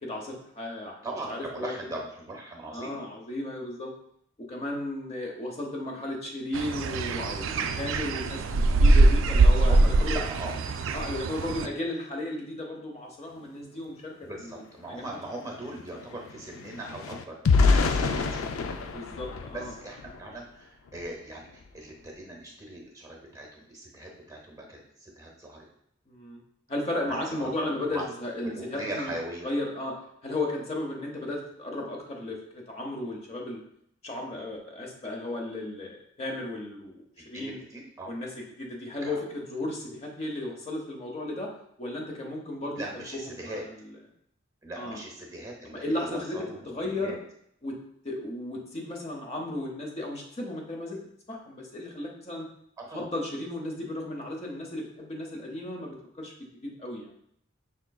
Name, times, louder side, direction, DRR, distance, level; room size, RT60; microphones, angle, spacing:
voice 1, 0.0-0.9 1.3-1.7 2.7-3.9 4.4-10.2 10.9-14.1 14.4-14.6 14.9-15.0 18.9-19.7 26.1-26.4 26.7-29.1 29.4-30.0 30.2-33.6 34.0-37.6 38.1-41.5 41.8-42.8 44.8-45.0 45.8-46.4 46.7-47.2 47.6-47.8 48.0-51.0 51.3-52.5 52.9-57.1, left 1 dB, 30° left, 0 dB, 0.7 m, -34 dB
voice 2, 1.0-3.1 9.6-10.6 14.2-18.6 19.5-25.7 27.1-28.1 28.4-29.5 37.2-38.1 39.0-39.2 42.8-43.6 44.6-47.2 52.8-53.1, right 1 dB, 15° right, 0 dB, 0.6 m, -40 dB
sound 1, 6.5-11.7, right 2 dB, 70° right, 0.3 m, -22 dB
sound 2, 14.5-14.6 14.9-20.4 20.9-21.1 21.4-21.7, left 4 dB, 85° left, 0.4 m, -27 dB
5.5 x 3.7 x 2.3 m, 0.70 s
head